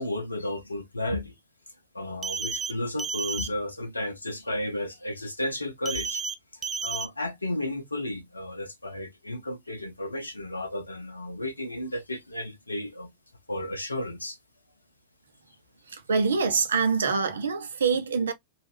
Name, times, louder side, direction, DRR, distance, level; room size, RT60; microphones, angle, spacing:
voice 1, 0.0-1.3 1.9-6.2 6.5-13.1 13.5-14.4 16.1-16.2, left 1 dB, 80° left, 0.5 m, -33 dB
sound 1, 2.2-2.7 3.0-3.5 5.8-6.3 6.6-7.1, right 5 dB, 20° right, 0.5 m, -31 dB
voice 2, 15.9-18.3, right 5 dB, 70° right, 0.6 m, -25 dB
3.0 x 2.3 x 3.2 m
figure-of-eight pair, 90°, 0 cm